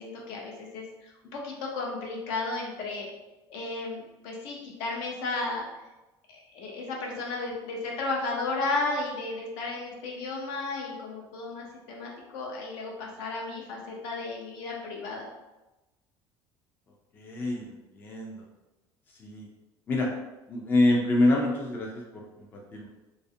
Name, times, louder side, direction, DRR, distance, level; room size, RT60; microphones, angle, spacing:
voice 1, 0.0-3.1 3.5-5.7 6.5-15.3, left 3 dB, 75° left, -2 dB, 0.6 m, -34 dB
voice 2, 17.1-18.5 19.2-19.5 19.9-20.1 20.5-22.9, left 2 dB, 20° left, -1 dB, 0.3 m, -26 dB
2.3 x 2.0 x 2.6 m, 1.0 s
cardioid pair, 155°, 9 cm